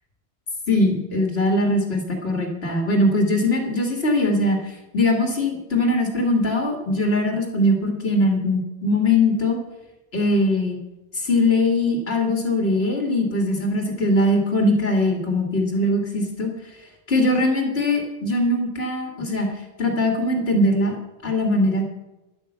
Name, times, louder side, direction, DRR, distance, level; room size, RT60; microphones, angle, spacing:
voice 1, 0.7-9.6 10.1-10.8 11.1-21.0 21.2-21.8, left 1 dB, 60° left, 3 dB, 2.0 m, -21 dB
10.5 x 8.7 x 7.8 m, 1.0 s
omnidirectional pair, 1.2 m